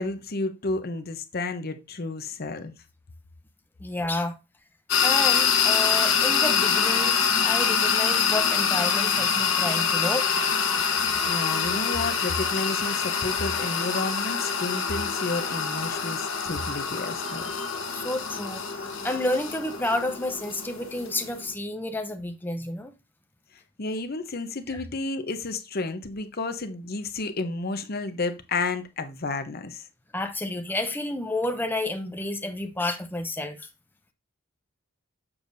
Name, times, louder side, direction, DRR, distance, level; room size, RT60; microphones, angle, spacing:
voice 1, 0.0-2.7 11.3-17.4 23.8-29.8, left 3 dB, 45° left, 0.8 m, -31 dB
voice 2, 3.8-4.4 5.0-7.2 7.4-10.3 17.9-22.9 24.7-24.8 30.1-33.7, left 1 dB, 10° left, 0.7 m, -30 dB
sound 1, 4.9-21.5, left 6 dB, 75° left, 1.2 m, -25 dB
7.1 x 6.5 x 2.6 m
head